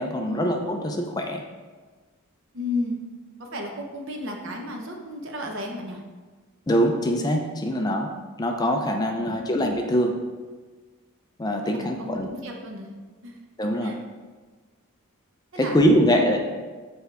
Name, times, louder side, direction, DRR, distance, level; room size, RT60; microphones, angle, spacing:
voice 1, 0.0-1.4 6.7-8.1 8.4-10.2 11.4-12.3 13.6-14.0 15.6-16.4, equal, 15° left, 3 dB, 0.4 m, -23 dB
voice 2, 2.5-3.0 3.4-6.0 9.1-9.6 11.6-12.9 13.2-13.4 13.8-13.9 15.5-16.2, left 1 dB, 55° right, 1 dB, 0.9 m, -33 dB
6.8 x 4.6 x 3.4 m, 1.4 s
head